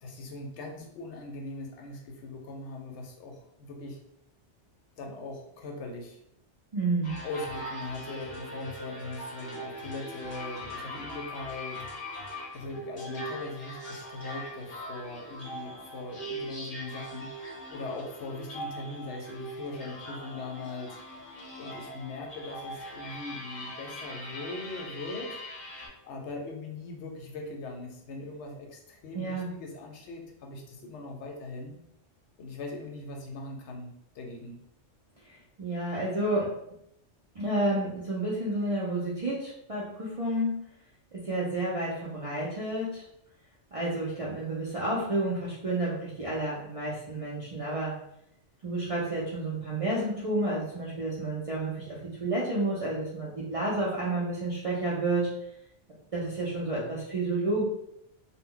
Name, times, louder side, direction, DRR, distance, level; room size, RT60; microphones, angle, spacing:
voice 1, 0.0-4.0 5.0-6.2 7.2-17.3 17.7-20.9 21.6-25.4 25.8-31.8 32.4-34.6, left 2 dB, 75° left, 1 dB, 0.9 m, -40 dB
voice 2, 6.7-7.2 29.1-29.5 35.3-36.5 37.3-40.6 41.1-43.0 43.7-48.0 48.6-55.3 56.1-57.7, right 2 dB, 50° right, -6 dB, 0.4 m, -30 dB
sound 1, 7.0-25.9, equal, 45° left, 0.7 m, -41 dB
2.2 x 2.0 x 3.6 m, 0.77 s
omnidirectional pair, 1.2 m